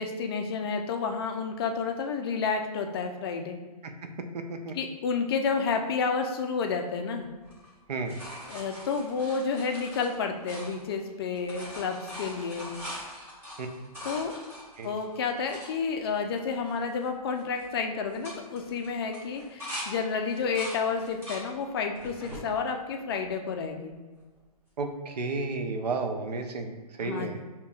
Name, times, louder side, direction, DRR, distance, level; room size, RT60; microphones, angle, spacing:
voice 1, 0.0-3.6 4.7-7.3 8.5-12.7 14.0-14.3 14.8-23.9 27.0-27.4, left 5 dB, 40° left, 4 dB, 0.4 m, -30 dB
voice 2, 4.3-4.8 7.9-8.1 13.6-13.7 14.8-14.9 24.8-27.4, right 3 dB, 85° right, 5 dB, 0.6 m, -32 dB
sound 1, 7.4-11.1 11.3-15.7 16.3-16.4 16.6-17.0 17.3-17.7 18.1-19.9 20.3-21.5 21.9-22.5 23.1-23.8 25.4-25.5, equal, 10° right, 1.1 m, -42 dB
5.2 x 2.8 x 2.3 m, 1.3 s
hypercardioid pair, 150°, 20 cm